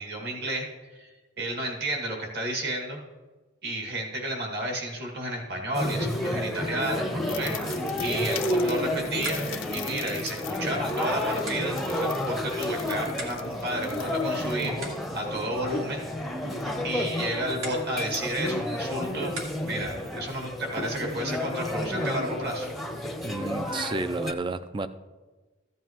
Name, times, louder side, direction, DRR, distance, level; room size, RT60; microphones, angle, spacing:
voice 1, 0.0-3.0 3.6-7.6 8.0-14.9 15.1-16.0 16.3-16.5 16.8-19.4 19.6-22.7, right 1 dB, 50° right, 2.0 m, -32 dB
sound 1, 5.7-24.3, left 1 dB, ahead, 0.7 m, -31 dB
sound 2, 7.1-15.2, left 12 dB, 65° left, 0.5 m, -42 dB
sound 3, 7.6-19.9, right 2 dB, 75° right, 2.2 m, -46 dB
voice 2, 23.2-24.9, right 3 dB, 25° right, 0.3 m, -31 dB
14.5 x 9.2 x 3.0 m
head